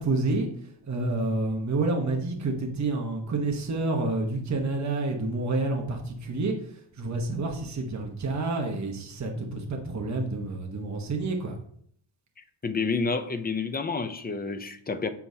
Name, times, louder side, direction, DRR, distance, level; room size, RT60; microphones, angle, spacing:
voice 1, 0.0-11.6, right 2 dB, 35° right, 2 dB, 1.1 m, -29 dB
voice 2, 12.4-15.1, left 4 dB, 20° left, 9 dB, 0.4 m, -29 dB
7.6 x 7.0 x 2.8 m, 0.64 s
wide cardioid pair, 140°, 49 cm